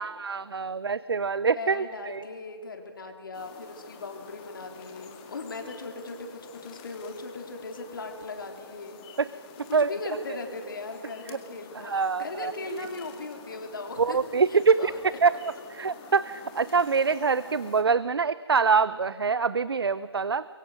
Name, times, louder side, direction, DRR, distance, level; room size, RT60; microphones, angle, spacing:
voice 1, 0.0-2.2 9.2-9.3 9.7-9.9 11.3-11.4 11.8-12.9 14.0-14.9 15.2-15.3 15.7-20.5, right 5 dB, 60° right, 17 dB, 0.6 m, -25 dB
voice 2, 1.5-9.0 9.7-14.2 14.5-15.0, left 3 dB, 50° left, 4 dB, 3.6 m, -38 dB
sound 1, 3.3-17.8, left 5 dB, 20° left, 1.9 m, -48 dB
30.0 x 23.0 x 6.5 m, 2.2 s
figure-of-eight pair, 150°, 14 cm